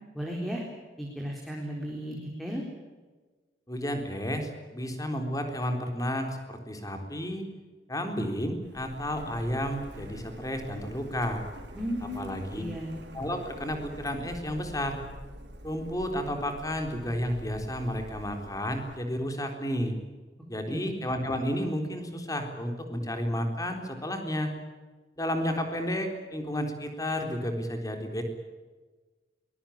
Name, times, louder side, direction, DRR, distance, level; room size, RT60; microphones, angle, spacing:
voice 1, 0.1-0.6 1.0-2.6 11.7-12.3 12.6-12.9 20.7-20.9, equal, ahead, 0 dB, 3.9 m, -34 dB
voice 2, 3.7-7.5 7.9-11.4 12.1-12.6 13.1-15.0 15.6-19.9 20.5-24.5 25.2-28.2, equal, 20° left, 5 dB, 3.9 m, -32 dB
Printer, 8.6-19.0, equal, 80° right, 4.2 m, -46 dB
24.0 x 21.0 x 8.8 m, 1.3 s
head